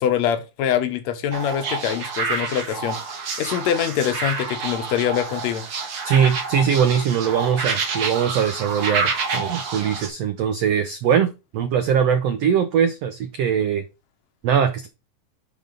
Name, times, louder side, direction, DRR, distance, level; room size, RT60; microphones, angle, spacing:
voice 1, 0.0-3.0 3.4-5.6, left 9 dB, 65° left, 1.9 m, -24 dB
sound 1, 1.3-10.1, right 4 dB, 50° right, 2.0 m, -28 dB
voice 2, 6.0-11.3 11.5-13.8 14.4-14.9, right 8 dB, 85° right, 1.4 m, -21 dB
10.5 x 4.1 x 3.7 m
omnidirectional pair, 4.1 m